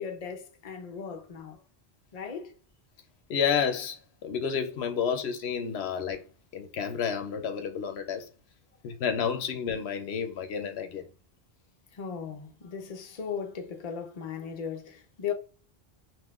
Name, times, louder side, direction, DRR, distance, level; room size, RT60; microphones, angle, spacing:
voice 1, 0.0-1.6 2.1-2.5 11.9-15.3, left 7 dB, 45° left, 0.7 m, -37 dB
voice 2, 3.3-6.2 6.5-8.3 8.8-11.0, left 7 dB, 80° left, 0.8 m, -30 dB
3.6 x 2.6 x 2.3 m
omnidirectional pair, 1.1 m